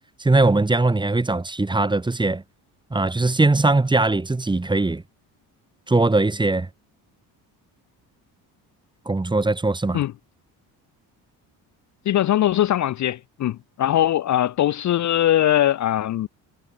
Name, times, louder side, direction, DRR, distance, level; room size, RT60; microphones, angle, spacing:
voice 1, 0.2-2.4 2.9-5.0 5.9-6.7 9.1-10.0, right 2 dB, 10° right, 1.1 m, -20 dB
voice 2, 12.1-16.3, left 12 dB, 45° left, 0.6 m, -21 dB
cardioid pair, 100°, 40 cm